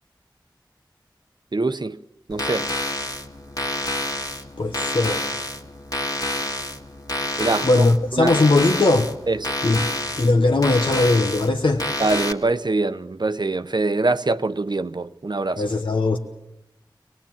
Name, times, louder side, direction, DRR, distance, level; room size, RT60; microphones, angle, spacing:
voice 1, 1.5-2.0 2.3-2.7 7.4-7.8 8.2-8.4 9.3-9.5 12.0-15.6, right 3 dB, 60° right, 0.7 m, -24 dB
sound 1, 2.3-12.3, left 1 dB, 50° left, 1.9 m, -28 dB
voice 2, 4.2-5.2 7.6-9.1 9.6-9.9 10.1-11.8 15.6-16.2, left 2 dB, 85° left, 1.0 m, -19 dB
25.0 x 19.0 x 7.4 m
wide cardioid pair, 45°, 8 cm